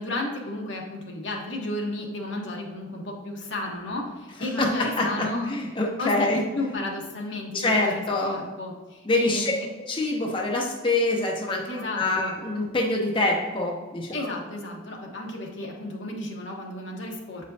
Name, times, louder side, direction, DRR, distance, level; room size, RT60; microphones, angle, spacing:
voice 1, 0.0-5.6 6.0-9.7 11.7-12.3 14.1-17.5, left 2 dB, 75° left, 0 dB, 1.2 m, -33 dB
voice 2, 4.6-5.1 5.5-6.4 7.5-8.4 9.1-9.5 9.8-14.1, left 2 dB, 25° left, 0 dB, 0.7 m, -25 dB
7.7 x 5.1 x 2.7 m, 1.3 s
head